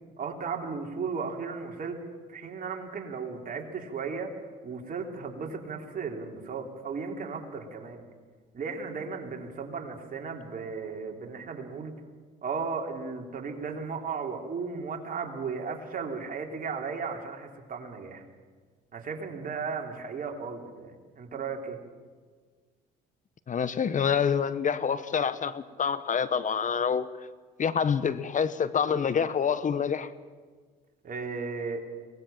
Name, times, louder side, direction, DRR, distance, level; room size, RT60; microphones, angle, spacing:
voice 1, 0.2-2.0 2.3-4.3 4.6-8.0 8.5-11.9 12.4-18.2 18.9-21.8 31.0-31.8, right 5 dB, 50° right, 2 dB, 3.7 m, -35 dB
voice 2, 23.5-27.1 27.6-30.1, left 7 dB, 45° left, 14 dB, 1.0 m, -27 dB
22.0 x 19.5 x 7.4 m, 1.5 s
supercardioid pair, 75°, 19 cm